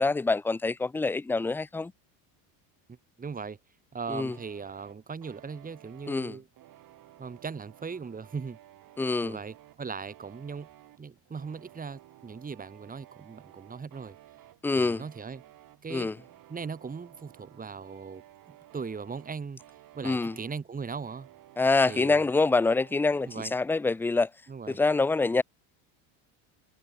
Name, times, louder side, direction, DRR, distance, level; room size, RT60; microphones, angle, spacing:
voice 1, 0.0-1.9 4.1-4.4 6.1-6.4 9.0-9.4 14.6-15.0 15.9-16.2 20.0-20.4 21.6-24.3 24.7-25.4, left 3 dB, 5° left, 0.3 m, -26 dB
voice 2, 2.9-3.6 3.9-6.5 7.2-8.6 9.2-10.7 11.0-14.2 14.7-15.4 15.8-16.1 16.5-19.6 19.9-21.3 21.9-22.2 23.3-23.5 24.5-24.8, right 5 dB, 15° right, 5.9 m, -39 dB
sound 1, 4.3-23.5, right 14 dB, 45° right, 5.8 m, -55 dB
cardioid pair, 145°, 47 cm